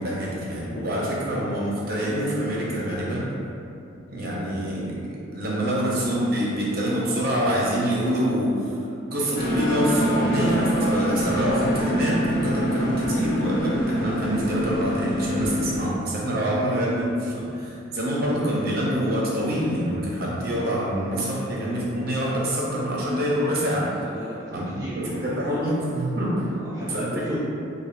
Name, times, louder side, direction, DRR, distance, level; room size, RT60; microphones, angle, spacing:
voice 1, 0.0-3.3 4.1-5.0 5.3-8.7 9.1-24.0 24.5-24.6 25.0-26.5 26.9-27.4, equal, 50° right, -5 dB, 0.7 m, -25 dB
sound 1, 9.4-15.8, equal, 50° left, 0.6 m, -25 dB
voice 2, 24.0-25.3 26.4-27.4, right 1 dB, 15° right, -10 dB, 0.5 m, -37 dB
5.3 x 2.3 x 2.6 m, 2.6 s
head